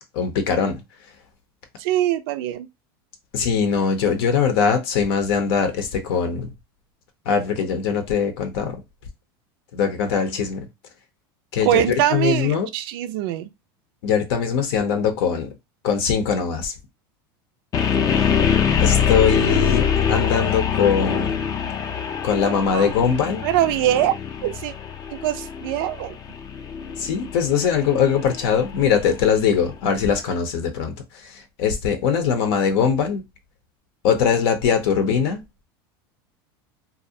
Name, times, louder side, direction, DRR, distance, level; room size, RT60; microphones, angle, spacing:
voice 1, 0.1-0.8 3.3-6.5 7.3-8.8 9.7-10.7 11.5-12.7 14.0-15.5 15.8-16.7 18.2-18.3 18.8-21.4 22.2-23.4 27.0-33.2 34.0-35.4, left 7 dB, 70° left, 0.7 m, -21 dB
voice 2, 1.8-2.7 11.6-13.5 22.7-22.9 23.4-24.7 25.1-26.2, right 13 dB, 70° right, 0.4 m, -23 dB
sound 1, 17.7-29.7, left 7 dB, 30° left, 0.4 m, -24 dB
2.5 x 2.0 x 2.7 m
supercardioid pair, 115°, 13 cm